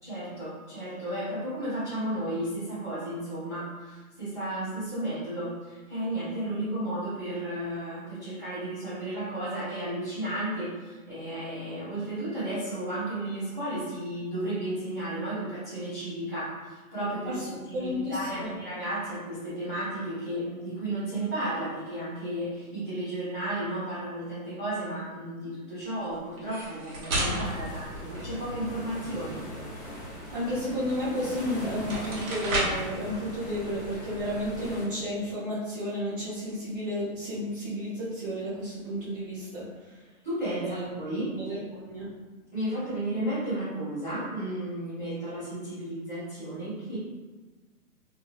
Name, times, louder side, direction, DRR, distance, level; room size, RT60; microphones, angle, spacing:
voice 1, 0.0-29.4 40.2-41.3 42.5-47.0, right 1 dB, 15° right, -17 dB, 0.4 m, -33 dB
voice 2, 17.3-18.5 30.3-40.0 40.4-40.9 41.3-42.1, equal, 30° right, -12 dB, 0.8 m, -32 dB
sound 1, 26.4-28.8 31.2-31.3 31.7-32.9, right 1 dB, 70° right, 1.1 m, -32 dB
sound 2, 27.4-34.9, equal, 10° left, 0.9 m, -41 dB
3.0 x 2.6 x 2.3 m, 1.3 s
hypercardioid pair, 155°, 44 cm